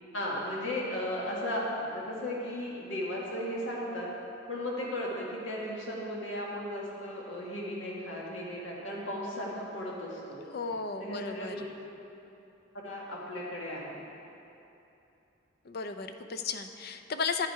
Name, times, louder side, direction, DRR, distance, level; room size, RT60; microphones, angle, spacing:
voice 1, 0.1-4.1 4.5-10.5 11.0-11.7 12.7-14.0, left 1 dB, 80° left, -4 dB, 1.8 m, -35 dB
voice 2, 10.5-11.7 15.7-17.5, left 5 dB, 50° left, 8 dB, 0.5 m, -34 dB
11.0 x 7.4 x 4.8 m, 2.8 s
head